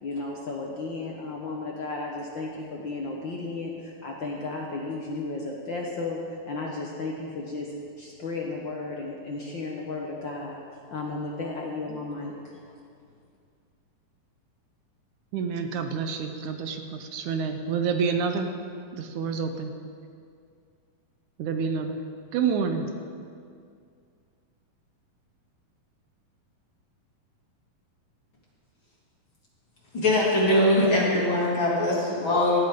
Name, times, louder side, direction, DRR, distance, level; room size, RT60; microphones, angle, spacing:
voice 1, 0.0-10.6 10.9-12.6, left 3 dB, 70° left, -2 dB, 1.1 m, -34 dB
voice 2, 15.3-18.5 18.9-19.7 21.4-22.0 22.3-22.9, right 6 dB, 70° right, 6 dB, 2.0 m, -28 dB
voice 3, 29.9-32.6, left 1 dB, 35° left, -5 dB, 3.0 m, -22 dB
18.0 x 13.5 x 3.8 m, 2.3 s
omnidirectional pair, 4.0 m